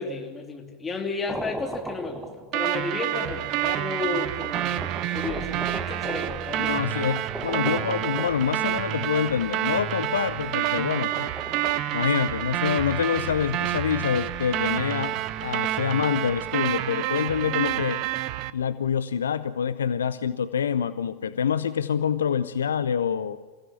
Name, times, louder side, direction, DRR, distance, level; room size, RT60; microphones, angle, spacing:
voice 1, 0.0-6.9, left 4 dB, 15° left, 2 dB, 3.2 m, -33 dB
sound 1, 1.3-2.8 3.7-3.8 4.4-8.9 10.7-11.8, right 1 dB, 5° right, 1.8 m, -38 dB
sound 2, 2.5-18.5, right 13 dB, 40° right, 0.9 m, -28 dB
voice 2, 6.6-11.3 11.9-18.0 18.5-23.4, left 7 dB, 65° left, 14 dB, 0.7 m, -26 dB
27.5 x 16.0 x 7.3 m, 1.3 s
figure-of-eight pair, 90°, 0 cm